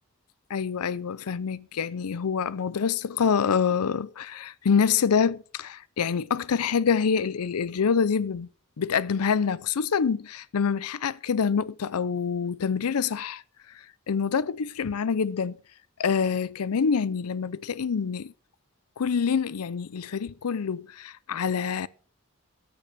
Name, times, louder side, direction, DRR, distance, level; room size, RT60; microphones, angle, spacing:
voice 1, 0.5-8.5 8.8-13.4 14.1-15.6 16.0-18.3 19.0-21.9, left 6 dB, 90° left, 0.5 m, -26 dB
11.0 x 8.7 x 5.2 m
head